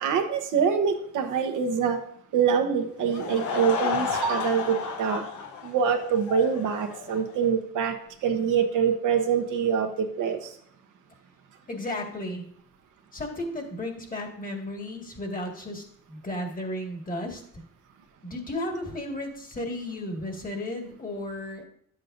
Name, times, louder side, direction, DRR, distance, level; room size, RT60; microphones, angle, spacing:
voice 1, 0.0-2.0 2.3-5.2 5.6-8.0 8.2-10.5, right 7 dB, 80° right, 5 dB, 1.1 m, -25 dB
Laughter / Crowd, 3.0-7.5, left 6 dB, 75° left, 1.1 m, -32 dB
voice 2, 11.7-12.5 13.1-17.6 18.2-21.6, left 1 dB, 30° left, 3 dB, 1.9 m, -34 dB
10.5 x 7.6 x 2.6 m, 0.65 s
cardioid pair, 90°, 30 cm